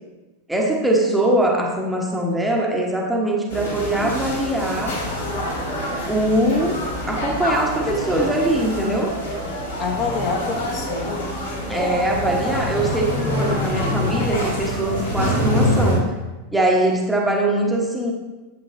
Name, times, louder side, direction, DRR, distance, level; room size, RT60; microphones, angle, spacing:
voice 1, 0.5-5.0 6.1-9.2 11.7-16.1 16.5-18.1, right 1 dB, 5° right, 0 dB, 1.0 m, -22 dB
sound 1, 3.5-16.0, equal, 75° left, 2.6 m, -25 dB
voice 2, 7.8-8.4 9.8-11.3, left 5 dB, 35° left, 1 dB, 1.2 m, -27 dB
9.1 x 7.9 x 2.6 m, 1.1 s
figure-of-eight pair, 90°, 0 cm